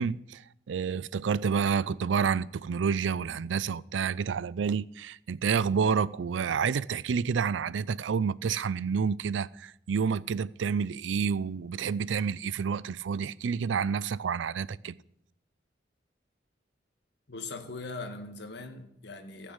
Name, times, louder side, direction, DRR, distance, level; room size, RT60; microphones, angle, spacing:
voice 1, 0.0-15.0, right 6 dB, 85° right, 0.4 m, -29 dB
voice 2, 17.3-19.5, left 3 dB, 65° left, 1.5 m, -40 dB
14.5 x 6.7 x 8.0 m
head